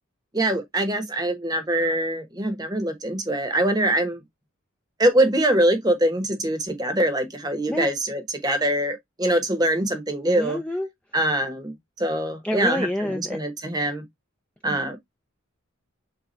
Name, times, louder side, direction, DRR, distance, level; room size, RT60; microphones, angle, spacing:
voice 1, 0.3-4.2 5.0-10.6 11.1-14.0 14.6-15.0, right 1 dB, 20° right, 1.0 m, -23 dB
voice 2, 10.4-10.9 12.4-13.4, left 1 dB, 5° left, 0.5 m, -27 dB
6.6 x 2.4 x 3.0 m
head